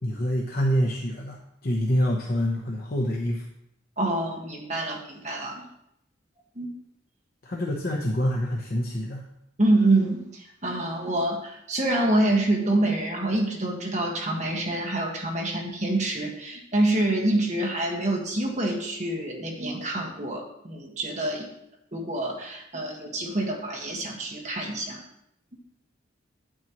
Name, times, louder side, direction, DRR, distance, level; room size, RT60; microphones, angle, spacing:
voice 1, 0.0-3.4 7.4-9.2, equal, 50° left, -1 dB, 0.9 m, -26 dB
voice 2, 4.0-5.6 6.5-6.7 9.6-21.5 21.9-25.0, right 1 dB, 40° right, 0 dB, 1.6 m, -26 dB
9.1 x 8.8 x 3.0 m, 0.78 s
head